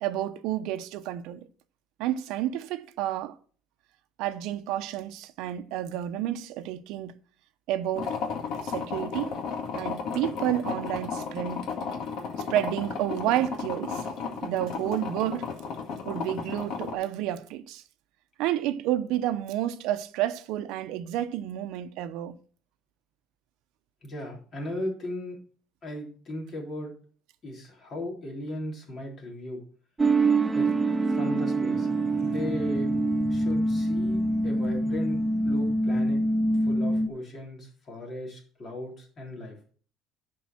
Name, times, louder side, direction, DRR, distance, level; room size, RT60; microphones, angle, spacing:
voice 1, 0.0-1.5 2.0-3.4 4.2-7.2 7.7-8.2 8.6-9.4 9.7-11.6 12.5-14.1 14.4-15.5 16.0-17.8 18.4-22.4, right 12 dB, 80° right, 0.8 m, -30 dB
sound 1, 7.9-16.9, left 5 dB, 60° left, 1.9 m, -34 dB
voice 2, 24.0-25.4 25.8-26.9 27.4-29.6 30.5-30.7 31.1-31.9 32.2-32.9 33.3-36.2 36.6-39.6, left 1 dB, 30° left, 3.4 m, -37 dB
sound 2, 30.0-37.1, right 2 dB, 15° right, 0.4 m, -25 dB
10.5 x 4.6 x 6.0 m
cardioid pair, 160°, 0 cm